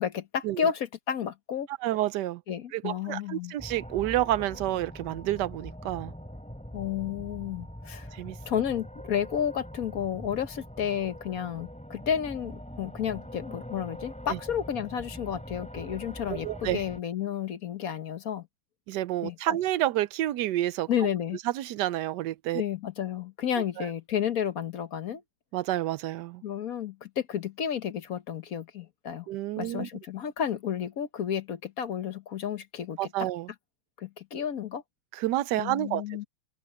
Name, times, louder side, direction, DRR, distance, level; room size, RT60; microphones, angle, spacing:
voice 1, 0.0-1.7 2.5-3.5 6.7-8.1 8.4-18.5 19.2-19.6 20.9-21.4 22.5-25.2 26.4-29.3 29.6-33.3 34.0-34.8 35.6-36.2, left 8 dB, 55° left, 1.3 m, -32 dB
voice 2, 1.8-2.4 2.7-6.1 8.1-8.4 14.3-14.4 16.3-16.8 18.9-21.1 21.5-22.6 23.8-23.9 25.5-26.4 29.3-29.9 33.0-33.5 35.1-36.2, right 14 dB, 75° right, 1.1 m, -29 dB
sound 1, 3.6-17.0, equal, 5° left, 2.9 m, -43 dB
open air
omnidirectional pair, 2.0 m